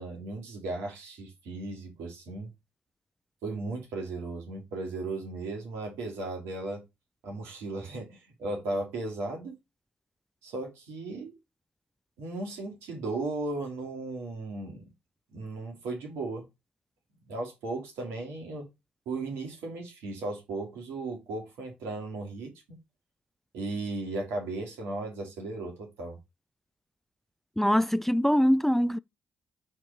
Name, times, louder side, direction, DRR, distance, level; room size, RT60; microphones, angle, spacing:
voice 1, 0.0-2.5 3.4-6.8 7.2-9.6 10.4-11.3 12.2-14.9 15.3-16.5 17.3-18.7 19.1-22.8 23.5-26.2, right 2 dB, 75° right, 2.5 m, -36 dB
voice 2, 27.6-29.0, equal, 5° left, 0.3 m, -23 dB
4.4 x 4.4 x 5.1 m
hypercardioid pair, 45°, 4 cm